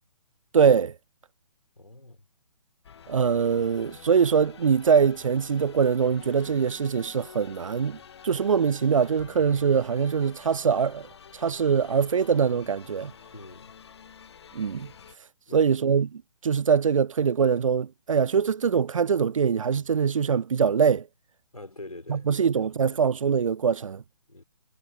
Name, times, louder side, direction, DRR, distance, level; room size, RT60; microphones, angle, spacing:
voice 1, 0.5-0.9 3.1-11.1 11.3-13.1 14.5-14.9 15.5-21.1 22.1-24.0, right 6 dB, 65° right, 0.4 m, -23 dB
voice 2, 1.8-2.2 13.3-13.7 15.5-15.7 21.5-22.3 22.6-23.0 24.3-24.4, left 2 dB, 85° left, 4.4 m, -44 dB
sound 1, 2.8-15.2, left 7 dB, 45° left, 1.5 m, -49 dB
figure-of-eight pair, 135°, 18 cm